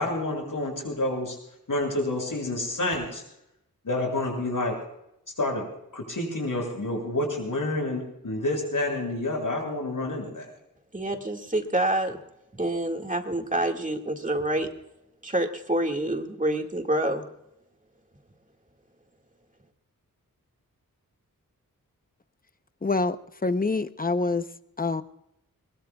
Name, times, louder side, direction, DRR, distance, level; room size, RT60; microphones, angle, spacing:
voice 1, 0.0-1.4 1.7-3.2 3.8-4.8 5.4-5.7 5.9-10.5, left 2 dB, 65° left, 1 dB, 6.8 m, -28 dB
voice 2, 10.9-12.2 12.5-14.7 15.2-17.2, right 1 dB, 20° right, 3 dB, 2.0 m, -27 dB
voice 3, 22.8-23.2 23.4-24.4 24.8-25.0, left 3 dB, 25° left, 11 dB, 0.8 m, -25 dB
22.0 x 21.5 x 2.4 m, 0.84 s
wide cardioid pair, 75°, 35 cm